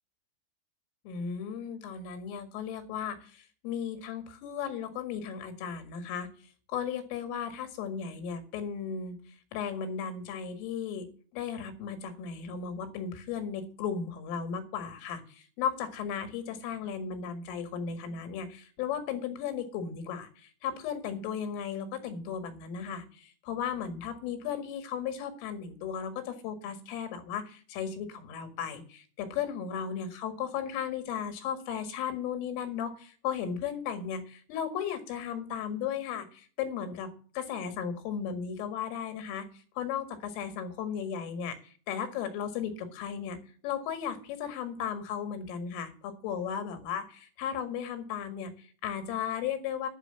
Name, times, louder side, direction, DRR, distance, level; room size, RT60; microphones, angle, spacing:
voice 1, 1.1-6.3 6.7-9.2 9.5-11.1 11.3-37.1 37.4-39.5 39.8-43.4 43.6-49.9, left 7 dB, 85° left, 8 dB, 4.4 m, -35 dB
11.5 x 6.5 x 7.8 m, 0.41 s
omnidirectional pair, 5.6 m